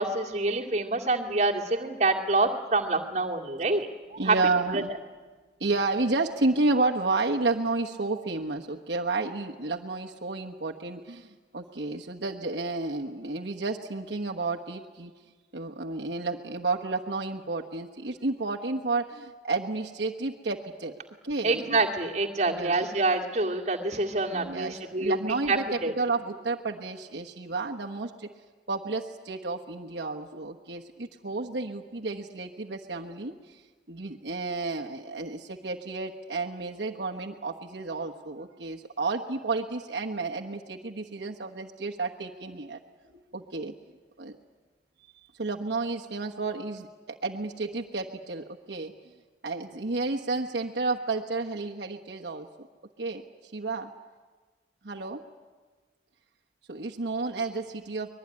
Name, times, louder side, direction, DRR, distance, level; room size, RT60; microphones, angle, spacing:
voice 1, 0.0-4.3 4.7-4.8 21.4-25.2 25.5-25.9, right 3 dB, 40° right, -1 dB, 2.1 m, -26 dB
voice 2, 4.2-4.9 5.6-15.1 15.5-20.9 21.2-21.8 22.5-22.9 24.3-28.3 28.7-33.6 33.9-42.8 43.1-43.7 44.2-44.4 45.4-48.9 49.4-52.5 53.0-53.9 54.8-55.2 56.7-58.1, right 3 dB, 70° right, 0 dB, 1.3 m, -31 dB
24.0 x 21.0 x 9.8 m, 1.4 s
head